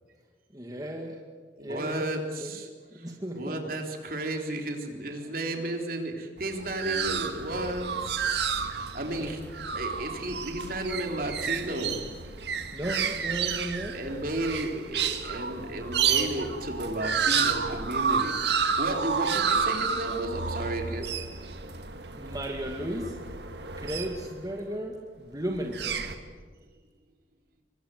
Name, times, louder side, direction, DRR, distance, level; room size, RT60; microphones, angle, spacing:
voice 1, 0.5-1.2 1.6-2.6 2.9-3.6 8.8-8.9 9.2-9.6 12.7-14.0 22.1-23.2 23.8-26.1, equal, 20° right, 1 dB, 2.1 m, -35 dB
voice 2, 1.6-2.7 3.0-8.4 8.7-12.1 13.9-21.1, right 1 dB, 50° right, 3 dB, 3.7 m, -33 dB
sound 1, 6.4-24.6 25.5-26.1, right 6 dB, 70° right, 1.8 m, -30 dB
27.5 x 24.0 x 7.8 m, 1.5 s
head